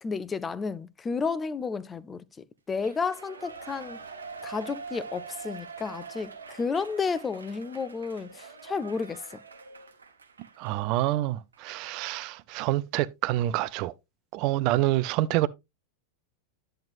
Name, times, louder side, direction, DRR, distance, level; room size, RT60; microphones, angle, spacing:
voice 1, 0.0-2.2 2.7-4.0 4.4-9.2, left 5 dB, 15° left, 0.5 m, -32 dB
Shout / Cheering, 2.8-11.1 11.5-11.6, right 5 dB, 75° right, 1.0 m, -44 dB
voice 2, 10.6-13.9 14.3-15.5, right 16 dB, 45° right, 0.4 m, -27 dB
10.5 x 7.7 x 2.5 m
figure-of-eight pair, 90°, 0 cm